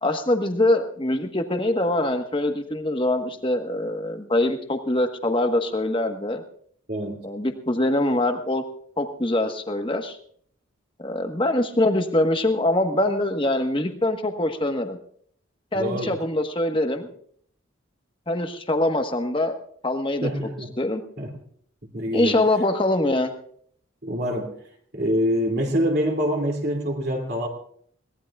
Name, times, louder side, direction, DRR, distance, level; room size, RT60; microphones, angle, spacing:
voice 1, 0.0-6.4 7.2-8.6 9.0-10.2 11.0-15.0 15.7-17.1 18.3-19.5 19.8-20.3 20.8-21.0 22.1-23.3, left 1 dB, 25° left, 6 dB, 1.3 m, -23 dB
voice 2, 6.9-7.2 15.7-16.2 20.2-20.7 21.2-21.3 21.9-22.4 24.0-24.5 24.9-27.5, equal, 50° right, 1 dB, 2.8 m, -25 dB
22.5 x 18.0 x 2.4 m, 0.62 s
head